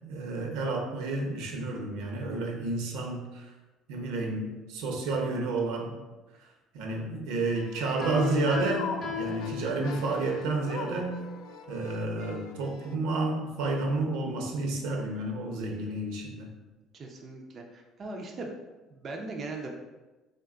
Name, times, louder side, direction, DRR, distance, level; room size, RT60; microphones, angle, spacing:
voice 1, 0.0-3.5 3.9-6.0 6.4-11.2 11.7-16.5, right 2 dB, 90° right, 1 dB, 0.7 m, -31 dB
sound 1, 7.5-13.0, left 5 dB, 70° left, 0.3 m, -42 dB
Piano, 8.0-10.3, left 8 dB, 35° left, 0.8 m, -36 dB
voice 2, 16.9-18.5 18.9-19.7, right 3 dB, 30° right, 1 dB, 0.3 m, -39 dB
3.8 x 2.2 x 3.6 m, 1.1 s
cardioid pair, 160°, 0 cm